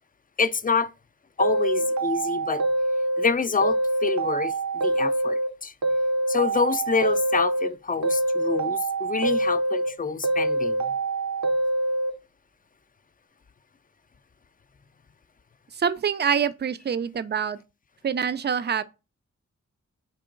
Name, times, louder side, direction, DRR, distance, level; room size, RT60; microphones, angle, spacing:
voice 1, 0.4-0.9 1.4-2.6 3.2-5.7 6.3-10.9, left 5 dB, 30° left, 0.4 m, -27 dB
sound 1, 1.4-3.3 3.6-5.5 5.8-7.7 8.0-9.9 10.2-12.1, right 2 dB, 70° right, 0.7 m, -25 dB
voice 2, 15.7-17.6 18.0-18.8, right 7 dB, 35° right, 0.4 m, -25 dB
4.7 x 2.8 x 3.7 m
wide cardioid pair, 65°, 29 cm